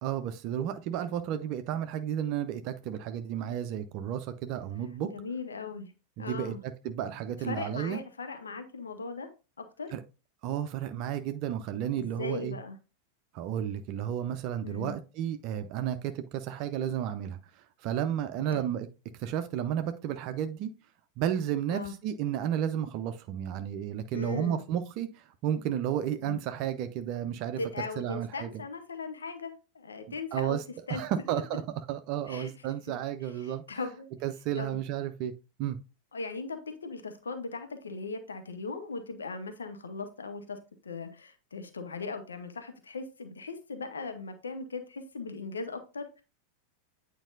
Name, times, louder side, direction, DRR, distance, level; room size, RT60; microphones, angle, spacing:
voice 1, 0.0-5.1 6.2-6.5 6.8-8.0 9.9-10.0 10.4-12.6 13.3-18.9 19.2-20.7 21.2-27.6 28.0-28.5 30.1-30.6 30.9-31.6 31.9-33.6 34.2-35.3 35.6-35.8, right 10 dB, 40° right, 0.5 m, -32 dB
voice 2, 5.0-5.9 6.2-6.6 7.4-9.3 9.6-9.9 12.0-12.8 14.6-15.0 18.5-18.6 21.7-21.9 24.1-24.6 26.2-26.4 27.6-30.6 30.9-31.0 32.3-32.5 32.9-33.0 33.2-34.1 34.6-34.8 36.1-46.2, left 4 dB, 70° left, 0.9 m, -38 dB
9.0 x 4.6 x 2.6 m
figure-of-eight pair, 90°, 0 cm